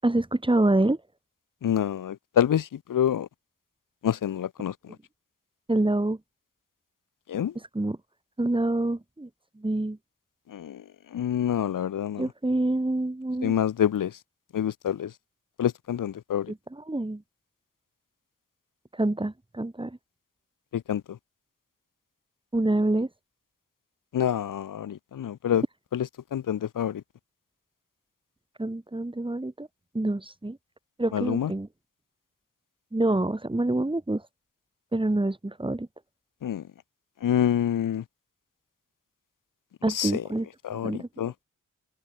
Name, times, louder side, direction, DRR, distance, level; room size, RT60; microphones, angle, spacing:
voice 1, 0.0-1.0 5.7-6.2 7.7-8.0 8.4-9.3 9.6-10.0 12.2-13.5 16.5-17.2 19.0-20.0 22.5-23.1 28.6-29.7 29.9-30.6 31.0-31.7 32.9-34.2 34.9-35.9 39.8-41.3, right 2 dB, 15° right, 4.6 m, -26 dB
voice 2, 1.6-3.3 4.0-4.7 7.3-7.5 10.5-10.8 11.1-12.3 13.4-14.1 14.5-15.1 15.6-16.5 20.7-21.2 24.1-25.6 25.9-27.0 31.1-31.5 36.4-36.6 37.2-38.0 39.9-40.2 40.6-41.3, left 9 dB, 70° left, 1.0 m, -27 dB
open air
wide cardioid pair, 100°, 33 cm